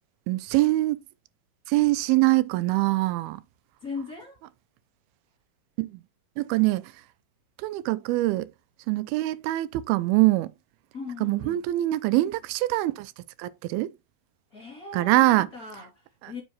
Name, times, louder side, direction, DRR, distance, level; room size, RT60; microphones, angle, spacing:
voice 1, 0.3-1.0 1.7-3.4 5.8-6.0 6.4-7.0 7.6-8.5 8.9-10.5 11.2-13.1 13.4-13.9 14.9-15.5 16.2-16.3, right 18 dB, 85° right, 2.5 m, -24 dB
voice 2, 3.8-4.4 10.9-11.6 14.5-16.4, left 4 dB, 30° left, 1.9 m, -39 dB
7.5 x 6.4 x 2.9 m
omnidirectional pair, 4.4 m